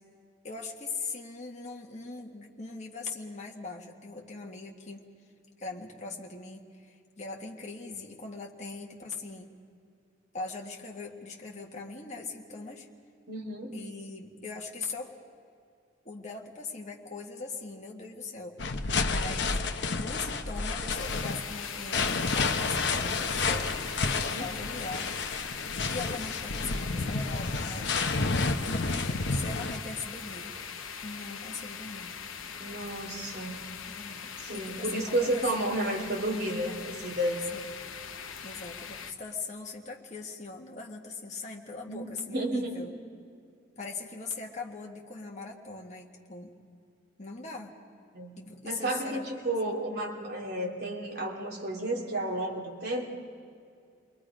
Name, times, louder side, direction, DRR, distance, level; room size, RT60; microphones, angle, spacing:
voice 1, 0.4-5.1 5.6-9.5 10.3-12.9 13.7-15.1 16.1-18.6 19.0-23.9 24.3-25.2 25.9-27.9 28.9-30.6 31.0-32.2 33.9-35.9 37.5-37.8 38.4-42.9 43.8-46.5 47.2-47.8 48.4-49.8, left 3 dB, 35° left, 0 dB, 1.8 m, -41 dB
voice 2, 13.3-13.8 24.3-24.5 32.6-33.6 34.4-37.4 41.9-42.8 48.1-48.4 48.6-53.1, right 1 dB, 55° right, -2 dB, 2.8 m, -32 dB
sound 1, 18.6-29.8, left 3 dB, 60° left, 0.9 m, -30 dB
sound 2, 21.0-39.1, left 7 dB, 90° left, 1.1 m, -41 dB
29.5 x 22.0 x 5.1 m, 2.3 s
head